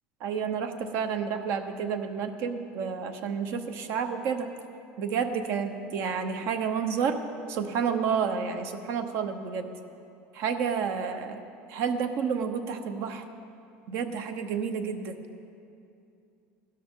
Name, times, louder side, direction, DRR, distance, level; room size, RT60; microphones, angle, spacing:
voice 1, 0.2-4.5 5.0-7.2 7.5-9.7 10.3-11.4 11.7-13.2 13.9-15.2, right 6 dB, 60° right, 7 dB, 1.0 m, -30 dB
15.5 x 12.5 x 3.8 m, 2.6 s
supercardioid pair, 130°, 5 cm